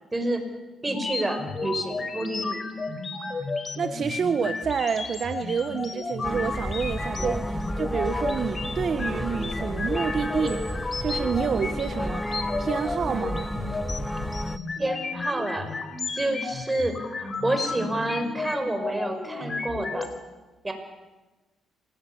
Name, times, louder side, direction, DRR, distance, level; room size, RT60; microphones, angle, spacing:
voice 1, 0.1-0.4 0.8-2.6 7.2-7.4 14.8-15.8 16.1-20.1 20.6-20.7, right 1 dB, 15° right, 6 dB, 5.7 m, -29 dB
sound 1, 0.9-20.1, left 3 dB, 35° left, 4.0 m, -33 dB
voice 2, 3.8-12.3 12.6-13.5, right 6 dB, 55° right, 8 dB, 1.4 m, -28 dB
sound 2, 6.2-14.6, equal, ahead, 1.0 m, -32 dB
26.5 x 20.0 x 9.6 m, 1.2 s
cardioid pair, 90°, 0 cm